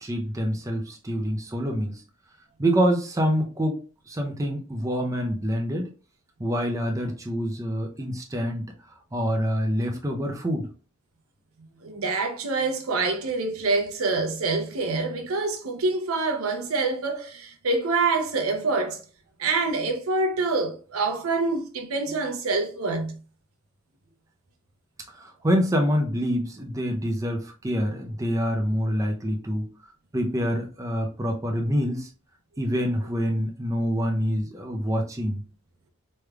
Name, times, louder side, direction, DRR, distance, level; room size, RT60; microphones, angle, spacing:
voice 1, 0.0-2.0 2.6-3.8 4.1-5.9 6.4-8.6 9.1-10.7 25.1-29.7 30.1-32.1 32.6-35.4, equal, 15° right, 0.5 m, -26 dB
voice 2, 11.8-19.0 19.4-23.2, right 3 dB, 85° right, 0.7 m, -26 dB
3.3 x 3.1 x 2.3 m
head